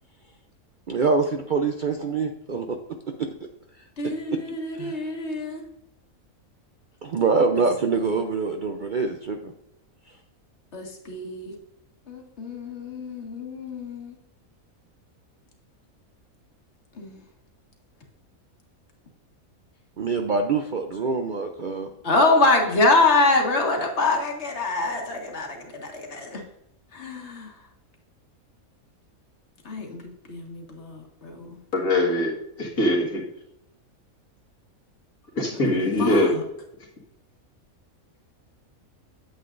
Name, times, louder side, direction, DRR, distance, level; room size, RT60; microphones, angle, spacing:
voice 1, 0.9-2.8 3.2-3.3 4.3-4.4 4.7-5.0 7.0-9.5 20.0-21.9, right 4 dB, 55° right, 5 dB, 0.5 m, -25 dB
voice 2, 4.0-5.6 10.7-11.5 12.1-14.1 17.0-17.2 22.0-26.4 26.9-27.5 29.6-30.0 30.3-31.6 36.0-36.3, left 3 dB, 50° left, 2 dB, 1.8 m, -25 dB
voice 3, 31.7-32.3 32.6-33.2 35.4-36.3, left 1 dB, 80° left, -2 dB, 2.3 m, -22 dB
9.1 x 7.8 x 2.5 m, 0.84 s
omnidirectional pair, 1.5 m